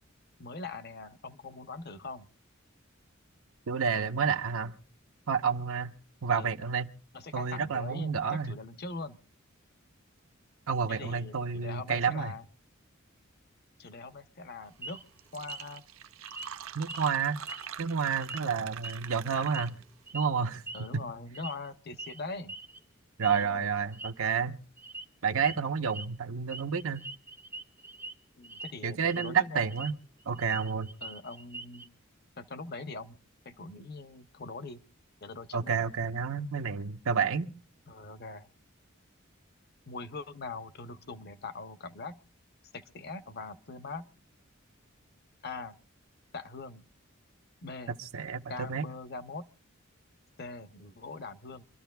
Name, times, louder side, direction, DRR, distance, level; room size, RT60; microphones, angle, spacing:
voice 1, 0.4-2.3 6.3-6.6 7.1-9.2 10.9-12.5 13.8-15.0 15.3-15.8 18.4-18.7 20.7-22.6 23.3-23.7 28.4-29.7 31.0-31.9 32.4-33.2 33.4-34.8 35.2-35.9 37.9-38.5 39.9-42.2 42.7-44.1 45.4-45.8 46.3-46.8 47.6-47.9 48.5-49.5 50.4-51.6, left 3 dB, 50° left, 0.8 m, -42 dB
voice 2, 3.7-4.7 5.3-5.9 6.2-6.9 7.3-8.5 10.7-12.3 16.7-17.4 17.8-19.8 20.1-21.0 23.2-24.6 25.2-27.0 28.8-29.9 30.3-30.9 35.5-37.5 47.9-48.8, right 6 dB, 90° right, 0.9 m, -30 dB
sound 1, 14.8-15.1 15.5-15.8 16.3-16.5 16.8-17.1 17.5-17.9 18.2-18.4 18.8-19.7 20.1-20.3 20.7-20.9 21.3-21.7 22.0-22.2 22.5-22.8 23.2-23.4 23.8-24.1 24.8-25.1 25.4-25.6 25.9-26.1 26.5-28.1 28.4-28.7 29.0-29.9 30.2-31.9, right 2 dB, 10° right, 0.5 m, -43 dB
Fill (with liquid), 14.9-15.0 15.2-20.0, right 8 dB, 75° right, 0.6 m, -44 dB
26.5 x 13.0 x 2.3 m
head